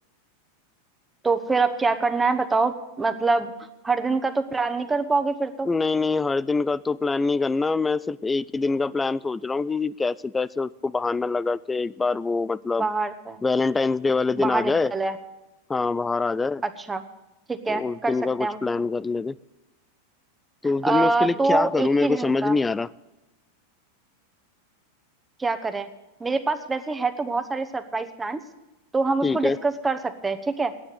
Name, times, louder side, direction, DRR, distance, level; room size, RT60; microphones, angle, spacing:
voice 1, 1.2-3.5 3.8-5.7 12.8-13.4 14.4-15.2 16.6-17.0 17.5-18.6 20.8-22.6 25.4-25.9 26.2-28.4 28.9-30.7, right 3 dB, 15° right, 8 dB, 1.0 m, -25 dB
voice 2, 5.7-12.9 13.4-14.9 15.7-16.6 17.7-19.4 20.6-22.9 29.2-29.6, left 3 dB, 15° left, 20 dB, 0.4 m, -24 dB
10.0 x 8.8 x 9.4 m, 1.0 s
hypercardioid pair, 110°, 0 cm